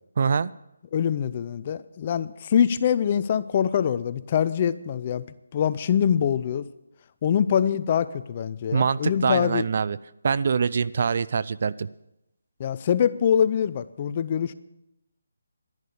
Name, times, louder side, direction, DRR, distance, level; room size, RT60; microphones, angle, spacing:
voice 1, 0.2-0.5 8.7-10.0 10.2-11.9, right 6 dB, 45° right, 18 dB, 0.4 m, -24 dB
voice 2, 0.9-5.2 5.5-6.6 7.2-9.7 12.6-14.5, left 8 dB, 30° left, 15 dB, 0.5 m, -24 dB
11.0 x 11.0 x 6.7 m, 0.88 s
hypercardioid pair, 170°, 0 cm